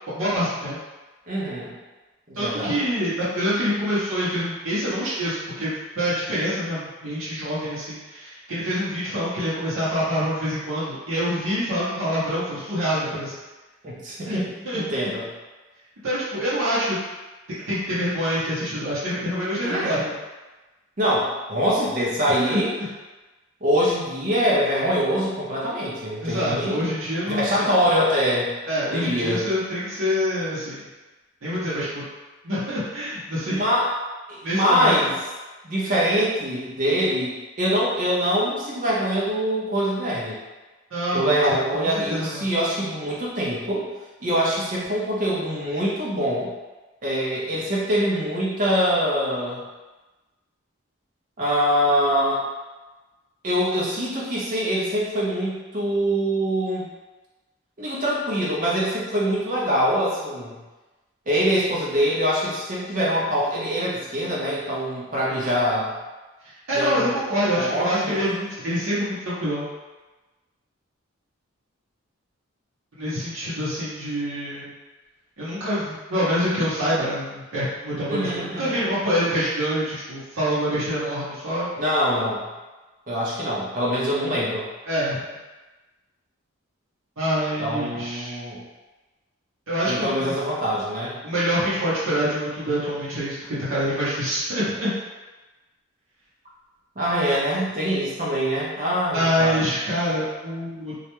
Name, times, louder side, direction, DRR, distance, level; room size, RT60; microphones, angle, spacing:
voice 1, 0.1-0.8 2.3-13.4 14.3-14.8 16.0-17.0 17.7-20.1 22.2-22.6 26.2-27.7 28.7-30.9 31.4-32.1 32.4-33.6 34.4-34.9 40.9-42.5 65.3-65.5 66.7-69.7 72.9-74.7 75.4-81.7 84.8-85.2 87.2-88.4 89.7-90.3 91.2-94.9 99.1-101.0, equal, 75° right, -11 dB, 0.8 m, -26 dB
voice 2, 1.3-1.7 2.3-2.8 13.8-15.3 19.6-20.0 21.0-22.7 23.6-26.9 27.3-28.5 28.9-29.4 33.5-33.9 34.3-35.1 35.6-40.4 41.1-43.9 44.2-46.5 47.0-49.6 51.4-52.4 53.4-56.9 57.8-60.6 61.3-65.9 66.7-67.1 67.5-68.2 78.1-78.9 81.8-82.5 83.1-84.7 87.6-88.6 89.9-91.2 97.0-99.7, equal, 40° right, -6 dB, 0.6 m, -24 dB
2.3 x 2.1 x 2.9 m, 1.2 s
head